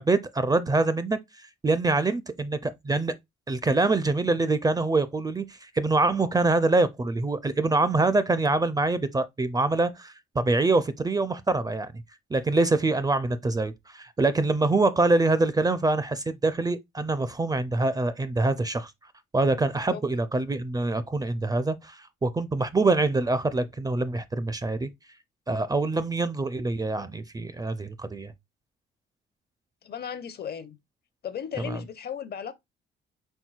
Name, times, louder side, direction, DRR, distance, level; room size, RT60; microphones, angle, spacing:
voice 1, 0.0-3.1 3.5-12.0 12.3-18.9 19.3-24.9 25.5-28.3 31.6-31.8, right 2 dB, 20° right, 0.4 m, -25 dB
voice 2, 29.8-30.8 31.2-32.5, left 8 dB, 55° left, 0.7 m, -35 dB
4.5 x 3.9 x 2.3 m
cardioid pair, 90°, 20 cm